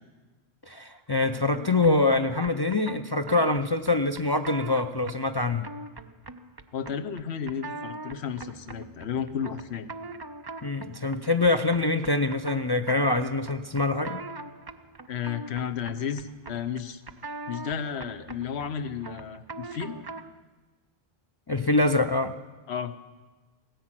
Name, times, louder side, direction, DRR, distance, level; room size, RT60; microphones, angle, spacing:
voice 1, 0.7-5.7 10.6-14.2 21.5-22.3, left 2 dB, 30° left, 7 dB, 0.4 m, -25 dB
sound 1, 1.2-20.4, right 3 dB, 30° right, 0.5 m, -42 dB
voice 2, 6.7-9.9 15.1-17.0 17.5-20.0 22.7-22.9, left 7 dB, 80° left, 10 dB, 1.1 m, -33 dB
17.5 x 10.5 x 7.5 m, 1.3 s
omnidirectional pair, 1.1 m